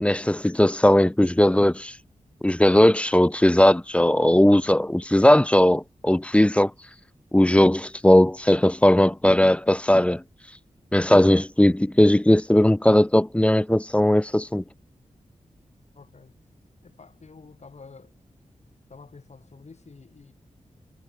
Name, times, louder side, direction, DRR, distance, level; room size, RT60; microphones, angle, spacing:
voice 1, 0.0-1.9 2.4-6.7 7.3-10.2 10.9-14.6, left 1 dB, 10° left, 0.5 m, -18 dB
voice 2, 15.9-16.4 16.8-18.2 18.9-20.3, left 4 dB, 55° left, 5.7 m, -48 dB
cardioid pair, 60°, 13 cm